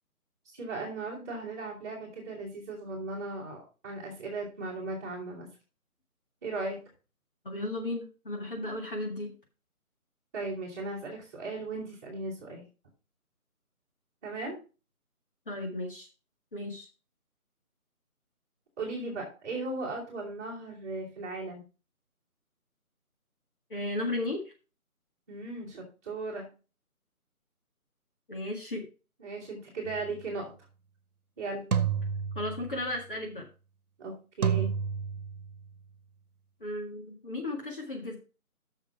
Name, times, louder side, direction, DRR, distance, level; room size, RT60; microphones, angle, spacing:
voice 1, 0.6-3.6 3.8-5.5 6.4-6.8 10.3-12.6 14.2-14.6 18.8-21.6 25.3-26.5 29.2-30.5 31.4-31.6 34.0-34.7, right 3 dB, 10° right, -7 dB, 2.8 m, -37 dB
voice 2, 7.5-9.3 15.5-16.1 16.5-16.9 23.7-24.4 28.3-28.8 32.4-33.4 36.6-38.2, left 2 dB, 35° left, 1 dB, 1.9 m, -34 dB
sound 1, 29.9-30.2 31.7-32.9 34.4-35.6, right 7 dB, 75° right, 1.2 m, -30 dB
7.2 x 6.7 x 5.9 m, 0.33 s
figure-of-eight pair, 170°, 44 cm